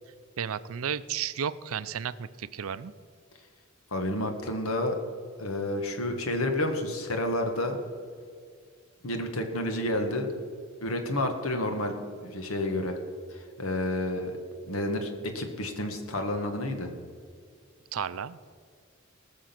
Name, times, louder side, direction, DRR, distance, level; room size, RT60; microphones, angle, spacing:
voice 1, 0.4-2.9 17.9-18.4, right 8 dB, 85° right, 16 dB, 0.5 m, -33 dB
voice 2, 3.9-5.0 5.4-7.8 9.0-10.3 10.8-11.9 12.2-13.0 13.3-14.4 14.7-16.9, left 1 dB, 90° left, 5 dB, 1.6 m, -30 dB
19.0 x 6.4 x 5.9 m, 2.1 s
head